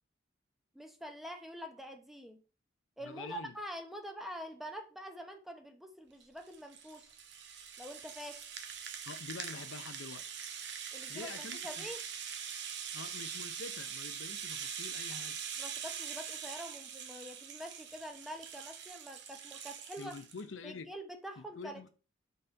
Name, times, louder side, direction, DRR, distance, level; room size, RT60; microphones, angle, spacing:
voice 1, 0.7-2.4 3.0-7.1 7.8-8.4 10.9-12.0 15.6-20.2 20.6-21.9, equal, ahead, 0.8 m, -45 dB
voice 2, 3.0-3.5 9.1-10.4 11.1-11.9 12.9-15.4 20.0-20.9 21.4-21.9, left 4 dB, 70° left, 0.6 m, -46 dB
Rattle (instrument), 6.2-20.4, right 7 dB, 60° right, 1.0 m, -43 dB
5.6 x 4.2 x 5.2 m
head